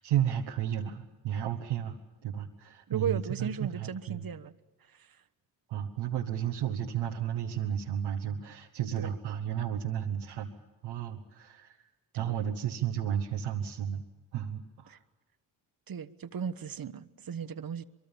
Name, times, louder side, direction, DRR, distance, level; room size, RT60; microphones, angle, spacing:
voice 1, 0.0-2.0 2.2-4.3 5.7-10.5 10.8-11.8 12.1-14.0 14.3-15.0, right 9 dB, 90° right, 0 dB, 1.4 m, -33 dB
voice 2, 2.9-4.5 4.9-5.2 9.0-9.1 12.2-12.4 14.9-15.0 15.9-17.8, right 7 dB, 50° right, 10 dB, 1.3 m, -36 dB
24.5 x 23.5 x 7.2 m, 1.1 s
supercardioid pair, 50°, 46 cm